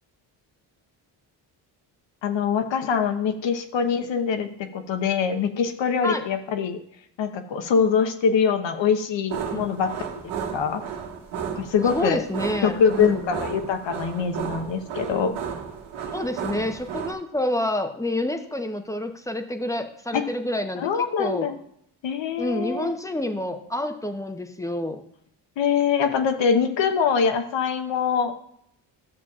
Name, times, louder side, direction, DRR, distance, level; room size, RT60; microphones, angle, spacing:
voice 1, 2.2-6.8 7.2-9.9 10.5-10.8 11.5-12.2 12.6-15.4 20.1-20.2 20.8-21.6 22.0-22.9 25.6-28.3, left 6 dB, 60° left, 8 dB, 1.0 m, -23 dB
sound 1, 9.3-17.1, right 7 dB, 80° right, 1.8 m, -33 dB
voice 2, 11.9-13.3 16.1-20.9 21.2-21.5 22.4-25.0, left 1 dB, 5° left, 7 dB, 0.8 m, -28 dB
12.5 x 6.9 x 2.4 m, 0.71 s
supercardioid pair, 70°, 49 cm